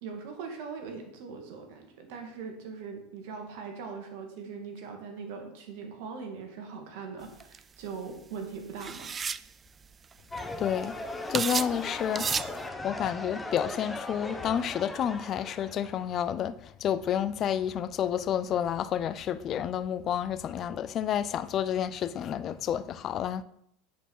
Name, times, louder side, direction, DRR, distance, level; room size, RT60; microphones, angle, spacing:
voice 1, 0.0-9.1, right 5 dB, 70° right, 1.9 m, -41 dB
sound 1, 7.4-7.6 8.8-9.5 10.1-10.2 10.4-10.7 11.3-11.8 12.1-12.5, right 6 dB, 25° right, 0.3 m, -31 dB
sound 2, 10.3-16.2, left 2 dB, 10° left, 0.9 m, -38 dB
voice 2, 10.6-12.3 12.8-23.4, left 9 dB, 40° left, 0.5 m, -30 dB
9.3 x 4.9 x 5.5 m
supercardioid pair, 110°, 0 cm